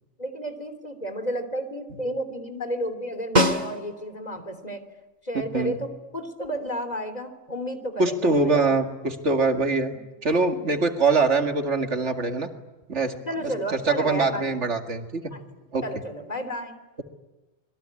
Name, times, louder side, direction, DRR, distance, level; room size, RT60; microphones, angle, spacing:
voice 1, 0.2-4.8 5.2-8.7 9.9-10.0 13.3-14.6 15.3-15.5 15.8-16.8, equal, 35° left, 9 dB, 3.4 m, -32 dB
Snare drum, 3.4-4.3 8.7-8.8, equal, 35° right, 2.1 m, -23 dB
voice 2, 8.0-9.9 10.2-12.5 12.9-13.2 13.9-15.3 15.7-15.8, right 3 dB, 65° right, 5 dB, 2.5 m, -23 dB
26.5 x 22.0 x 9.8 m, 1.1 s
omnidirectional pair, 1.3 m